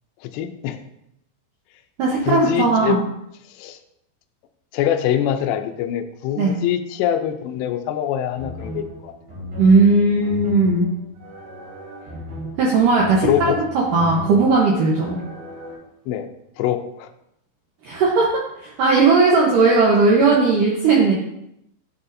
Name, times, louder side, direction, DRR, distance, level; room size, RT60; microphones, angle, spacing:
voice 1, 0.2-0.8 2.3-3.0 3.5-3.8 4.7-9.1 13.2-13.6 16.1-16.3 16.6-17.1, left 10 dB, 80° left, 7 dB, 2.6 m, -24 dB
voice 2, 2.0-3.0 6.4-6.5 9.6-10.9 12.6-13.5 13.9-15.2 17.8-21.1, right 3 dB, 80° right, -3 dB, 1.9 m, -17 dB
sound 1, 8.4-15.7, left 1 dB, 45° right, 4.3 m, -36 dB
10.5 x 6.8 x 2.7 m, 0.78 s
omnidirectional pair, 5.3 m